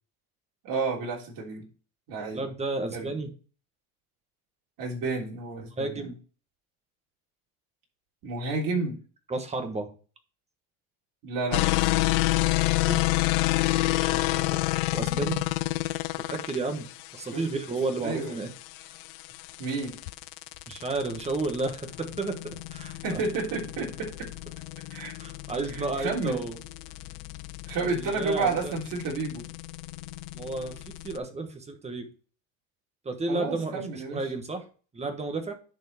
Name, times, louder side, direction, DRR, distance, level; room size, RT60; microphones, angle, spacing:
voice 1, 0.6-1.6 2.1-2.5 2.9-3.1 4.8-6.1 8.2-9.0 11.2-12.0 17.3-17.4 18.0-18.4 19.6-20.0 23.0-24.3 24.9-25.1 25.7-26.5 27.6-29.5 33.3-34.2, right 3 dB, 50° right, -1 dB, 3.6 m, -31 dB
voice 2, 2.3-3.3 5.8-6.2 9.3-9.9 12.9-13.0 14.0-14.6 14.9-15.4 16.3-18.5 20.7-23.2 25.2-26.6 27.8-28.7 30.3-32.1 33.0-34.7 34.9-35.5, right 3 dB, 15° right, 7 dB, 1.3 m, -32 dB
sound 1, 11.5-31.2, left 19 dB, 80° left, 0.6 m, -29 dB
10.5 x 4.6 x 4.3 m, 0.38 s
supercardioid pair, 135°, 42 cm